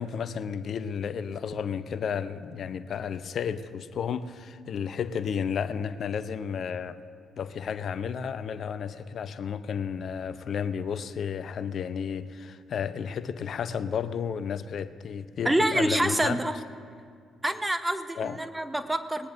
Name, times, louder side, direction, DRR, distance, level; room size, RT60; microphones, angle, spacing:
voice 1, 0.0-7.0 7.4-16.4 18.2-18.4, left 7 dB, 55° left, 13 dB, 0.6 m, -32 dB
voice 2, 15.4-16.6 17.4-19.3, right 1 dB, 15° right, 9 dB, 1.1 m, -26 dB
20.5 x 18.5 x 2.6 m, 2.2 s
hypercardioid pair, 45°, 0 cm